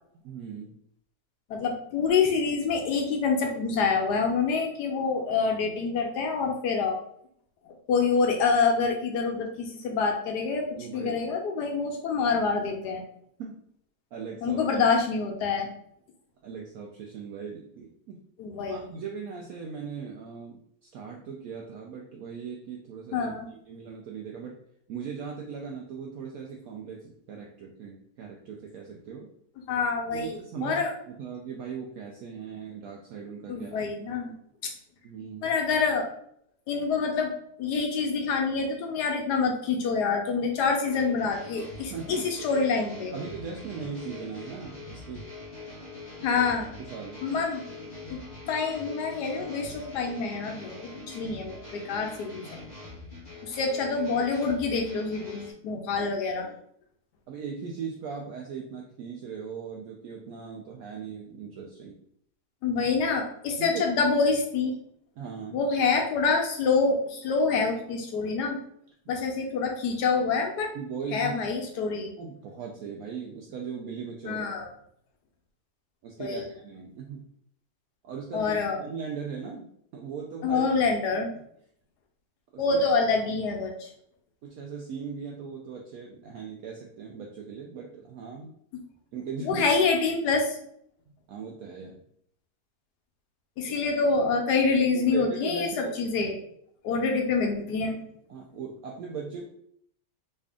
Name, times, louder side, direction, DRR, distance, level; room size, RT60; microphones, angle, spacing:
voice 1, 0.2-0.8 10.8-11.2 13.4-13.6 14.1-14.6 16.4-18.2 18.7-24.6 24.9-29.3 30.1-33.8 35.0-35.5 41.9-42.3 43.1-45.3 46.8-47.2 56.0-56.1 56.4-56.6 57.3-62.0 63.6-63.8 65.2-65.6 70.7-71.4 72.2-74.5 76.0-77.3 78.0-80.8 82.5-82.9 84.4-88.5 89.1-89.7 91.3-92.0 93.7-93.8 94.9-96.0 98.3-99.4, right 6 dB, 70° right, 0 dB, 0.9 m, -39 dB
voice 2, 1.5-7.0 7.9-13.0 14.4-15.7 18.4-18.9 23.1-23.5 29.7-30.9 33.5-34.3 35.4-36.1 36.7-43.1 46.2-46.7 47.2-47.6 48.1-48.2 48.5-52.6 53.4-56.5 62.6-64.7 65.5-68.6 69.1-70.7 71.1-72.1 74.2-74.7 76.2-76.4 78.3-78.8 80.4-81.3 82.6-83.9 89.4-90.6 93.6-96.4 96.8-98.0, left 4 dB, 75° left, 2 dB, 1.2 m, -26 dB
sound 1, 40.9-55.5, left 2 dB, 30° left, 0.9 m, -43 dB
3.3 x 2.6 x 3.5 m, 0.68 s
omnidirectional pair, 1.8 m